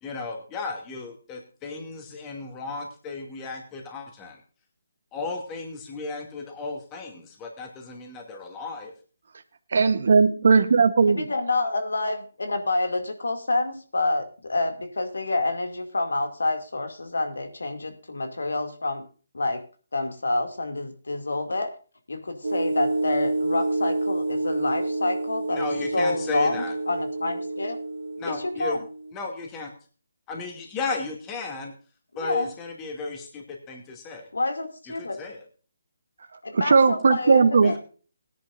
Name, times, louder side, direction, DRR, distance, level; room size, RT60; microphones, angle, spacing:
voice 1, 0.0-4.4 5.1-8.9 25.5-26.8 28.2-28.8 29.1-29.7 30.3-31.7 32.2-34.3 35.0-35.4 37.6-37.8, left 4 dB, 15° left, 2 dB, 2.3 m, -34 dB
voice 2, 9.7-11.3 36.5-37.7, right 4 dB, 60° right, 9 dB, 1.0 m, -18 dB
voice 3, 11.0-19.1 19.3-19.6 19.9-21.7 22.1-25.7 25.9-27.8 28.2-28.8 32.2-32.5 34.3-35.2 36.4-37.8, left 2 dB, 85° left, 6 dB, 2.3 m, -28 dB
sound 1, 22.4-29.1, right 2 dB, 90° right, 1.5 m, -28 dB
18.0 x 10.5 x 2.5 m, 0.38 s
hypercardioid pair, 160°, 0 cm